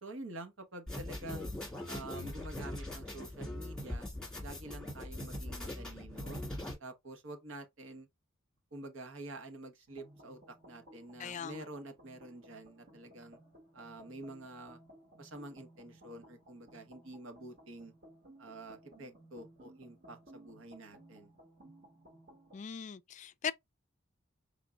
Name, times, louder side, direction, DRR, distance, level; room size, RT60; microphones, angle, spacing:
voice 1, 0.0-1.5 1.9-4.1 4.4-6.4 6.8-8.1 8.7-13.4 13.7-14.8 15.2-17.9 18.4-21.3, right 2 dB, 70° right, 1.2 m, -48 dB
sound 1, 0.9-6.7, left 1 dB, 5° left, 1.8 m, -41 dB
sound 2, 9.9-22.6, right 1 dB, 50° right, 2.0 m, -59 dB
voice 2, 11.2-11.7 22.5-23.5, left 7 dB, 35° left, 0.3 m, -39 dB
5.1 x 3.6 x 2.2 m
head